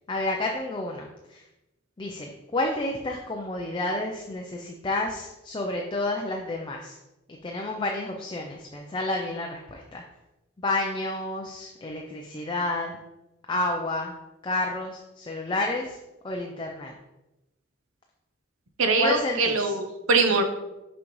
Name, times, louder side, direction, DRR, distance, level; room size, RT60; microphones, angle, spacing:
voice 1, 0.1-1.4 2.0-7.0 7.3-10.0 10.6-12.9 13.5-14.1 14.4-16.0 16.2-16.9 19.0-19.7, left 2 dB, 25° left, 1 dB, 0.4 m, -30 dB
voice 2, 18.8-20.4, right 3 dB, 85° right, 6 dB, 0.8 m, -22 dB
6.0 x 5.3 x 3.1 m, 0.98 s
head